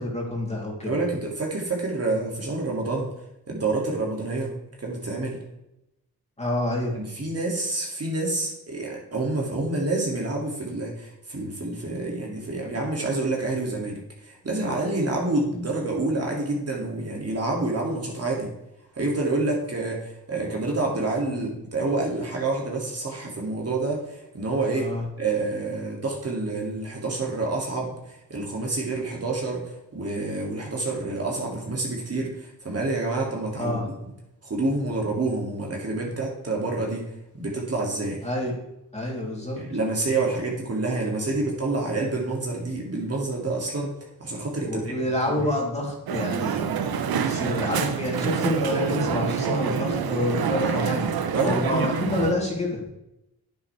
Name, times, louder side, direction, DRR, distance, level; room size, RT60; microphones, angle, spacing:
voice 1, 0.0-0.9 6.4-6.9 21.3-21.5 24.8-25.0 33.5-33.8 38.2-38.5 38.9-39.6 44.6-46.7 47.1-51.1 51.4-52.8, left 1 dB, 15° left, -2 dB, 3.1 m, -28 dB
voice 2, 0.8-3.1 3.5-4.5 4.8-5.4 6.9-18.5 18.9-24.9 25.2-29.6 29.9-33.8 34.4-37.0 37.3-38.2 39.6-43.9 44.2-44.9 45.3-45.4 51.3-51.8, right 2 dB, 40° right, -2 dB, 2.4 m, -28 dB
Crowd, 46.1-52.3, right 7 dB, 70° right, 0.9 m, -27 dB
9.4 x 8.1 x 3.4 m, 0.87 s
cardioid pair, 75°, 38 cm